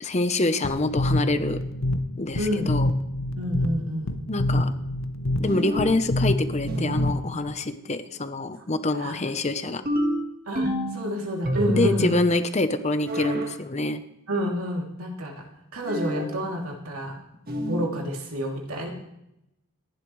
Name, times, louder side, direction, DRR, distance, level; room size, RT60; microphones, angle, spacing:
voice 1, 0.0-1.6 2.2-2.9 4.3-4.7 5.4-9.8 11.7-14.0, left 2 dB, 30° left, 10 dB, 0.8 m, -26 dB
sound 1, 0.6-7.5, left 1 dB, 70° left, 0.9 m, -27 dB
voice 2, 2.4-2.7 3.4-4.2 8.9-9.1 10.5-12.1 14.3-17.2 17.7-18.9, equal, 90° right, -1 dB, 3.0 m, -29 dB
sound 2, 5.5-6.0 6.7-7.2 9.9-11.0 11.4-12.1 13.1-13.6 15.9-16.4 17.5-18.0, equal, 45° right, 1.8 m, -28 dB
25.5 x 11.5 x 3.2 m, 0.84 s
head